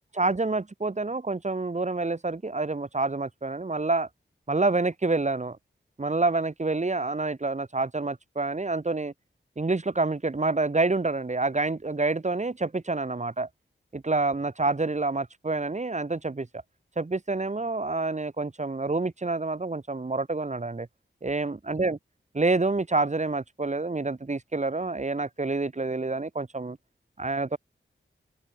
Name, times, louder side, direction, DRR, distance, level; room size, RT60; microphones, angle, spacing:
voice 1, 0.1-4.1 4.5-5.6 6.0-9.1 9.6-13.5 13.9-16.5 17.0-20.9 21.2-22.0 22.4-26.8 27.2-27.6, right 3 dB, 35° right, 2.2 m, -27 dB
open air
wide cardioid pair, 100°, 20 cm